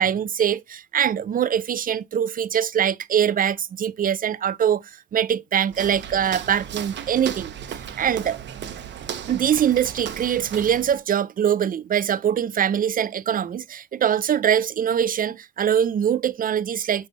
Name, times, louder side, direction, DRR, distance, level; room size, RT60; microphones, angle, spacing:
voice 1, 0.0-8.4 9.3-17.1, right 9 dB, 45° right, 0.6 m, -23 dB
Walk footsteps, 5.7-11.0, right 9 dB, 65° right, 1.0 m, -35 dB
9.3 x 3.3 x 4.1 m
cardioid pair, 90°, 20 cm